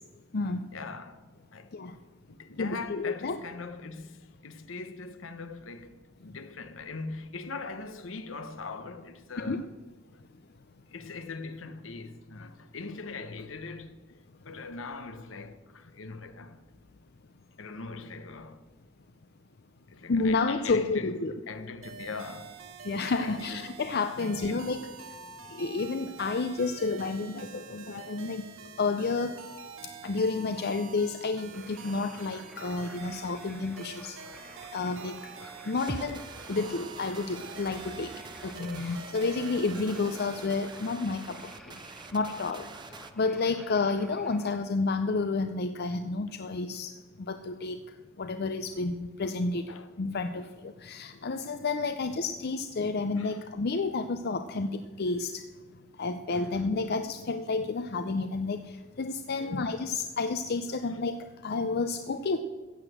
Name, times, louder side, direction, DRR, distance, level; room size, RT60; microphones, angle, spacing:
voice 1, 0.7-1.3 1.5-1.7 2.3-9.7 10.9-14.0 14.4-16.6 17.6-18.7 19.9-22.5 23.2-23.8 24.2-24.7 49.7-49.9 51.1-51.3 53.2-53.4 56.3-56.7 59.4-59.8 60.9-61.0 62.3-62.4, left 4 dB, 70° left, 1.0 m, -41 dB
voice 2, 2.6-3.4 9.4-9.6 20.1-21.3 22.8-24.8 25.5-28.4 28.8-29.4 30.0-34.2 34.7-35.1 35.7-36.2 36.5-38.1 38.4-41.4 42.1-42.7 43.2-46.9 47.3-47.8 48.2-49.7 50.0-55.4 56.0-58.6 59.0-61.2 61.4-62.4, left 3 dB, 50° left, 0.5 m, -30 dB
sound 1, 21.8-40.9, right 6 dB, 80° right, 1.4 m, -46 dB
sound 2, 31.5-44.6, equal, 5° left, 1.5 m, -52 dB
sound 3, 35.8-43.1, right 3 dB, 25° right, 0.6 m, -45 dB
15.0 x 8.0 x 7.8 m
head